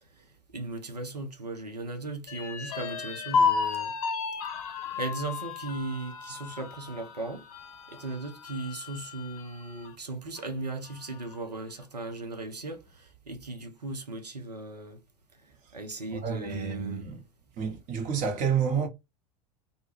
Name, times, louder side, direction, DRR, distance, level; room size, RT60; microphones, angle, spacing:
voice 1, 0.5-3.9 5.0-7.5 7.9-15.0 15.7-17.1, right 2 dB, 85° right, 0.6 m, -37 dB
sound 1, 2.3-9.9 10.4-10.5 10.9-11.5, left 5 dB, 65° left, 0.6 m, -33 dB
voice 2, 16.1-17.2 17.6-18.9, right 7 dB, 40° right, 0.9 m, -29 dB
2.1 x 2.1 x 3.1 m
figure-of-eight pair, 85°, 20 cm